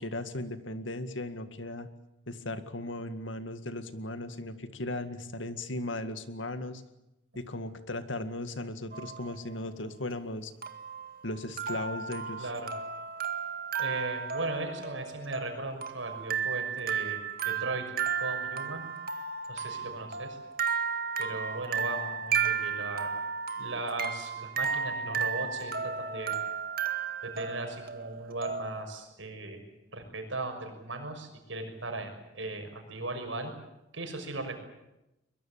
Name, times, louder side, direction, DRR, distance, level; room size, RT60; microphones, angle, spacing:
voice 1, 0.0-1.9 2.3-6.8 7.4-10.5 11.2-12.5, left 1 dB, 80° left, 10 dB, 2.0 m, -37 dB
sound 1, 8.9-9.3 10.6-28.8, right 6 dB, 50° right, 1.8 m, -34 dB
voice 2, 12.4-12.7 13.8-17.2 17.4-17.9 18.2-18.9 19.5-20.4 21.2-23.1 23.6-26.4 27.2-29.6 29.9-33.5 33.9-34.7, right 2 dB, 85° right, 5 dB, 6.2 m, -37 dB
23.0 x 22.0 x 8.9 m, 0.92 s
head